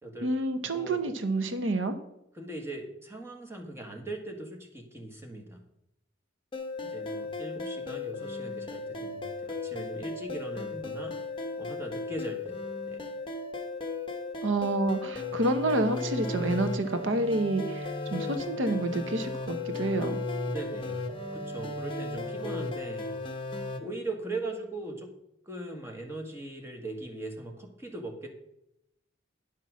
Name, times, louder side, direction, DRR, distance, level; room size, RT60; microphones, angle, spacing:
voice 1, 0.2-2.0 14.4-20.2, right 2 dB, 90° right, 9 dB, 0.9 m, -29 dB
voice 2, 2.3-5.6 6.8-11.2 11.6-13.1 20.5-23.1 23.8-25.1 25.4-28.3, right 2 dB, 15° right, 2 dB, 1.5 m, -40 dB
sound 1, 6.5-23.8, left 3 dB, 25° left, 1.0 m, -35 dB
10.5 x 5.7 x 6.3 m, 0.83 s
head